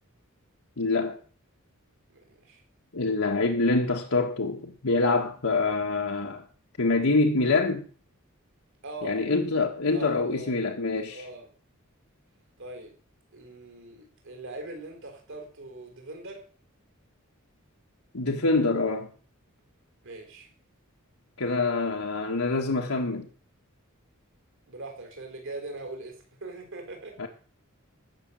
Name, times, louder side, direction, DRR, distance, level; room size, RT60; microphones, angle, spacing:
voice 1, 0.8-1.2 2.9-6.4 6.8-7.8 9.0-11.3 18.1-19.1 21.4-23.3 27.2-27.3, left 3 dB, 80° left, 1.5 m, -25 dB
voice 2, 2.1-2.6 8.8-9.2 9.9-10.6 11.1-11.5 12.6-12.9 13.3-16.4 20.0-20.5 24.7-26.1 26.4-27.1, right 2 dB, 65° right, 4.2 m, -41 dB
14.0 x 6.7 x 8.7 m
head